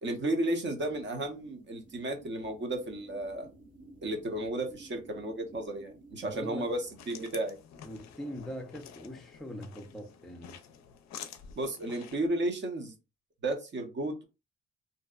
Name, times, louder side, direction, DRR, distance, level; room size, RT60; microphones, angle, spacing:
voice 1, 0.0-3.5 4.0-6.8 7.1-7.6 11.5-12.9 13.4-14.2, right 1 dB, 40° right, 0.7 m, -33 dB
sound 1, 0.7-6.8, right 2 dB, 70° right, 1.1 m, -54 dB
voice 2, 6.2-6.7 7.8-10.6, equal, ahead, 0.4 m, -42 dB
sound 2, 6.6-12.3, left 8 dB, 65° left, 0.5 m, -49 dB
2.6 x 2.0 x 2.3 m
cardioid pair, 90°, 30 cm